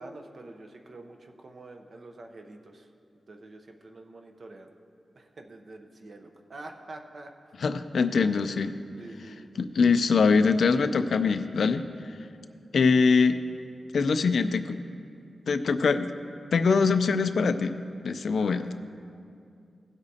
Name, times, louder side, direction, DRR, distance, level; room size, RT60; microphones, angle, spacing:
voice 1, 0.0-2.9 3.3-4.7 5.1-7.3 7.9-8.3 9.0-9.5 18.3-18.7, right 2 dB, 45° right, 4 dB, 0.7 m, -46 dB
voice 2, 7.6-8.7 9.6-11.8 12.7-13.4 13.9-14.8 15.5-16.1 16.5-18.7, left 5 dB, 70° left, 10 dB, 0.4 m, -23 dB
17.0 x 8.0 x 2.8 m, 2.4 s
wide cardioid pair, 145°, 0 cm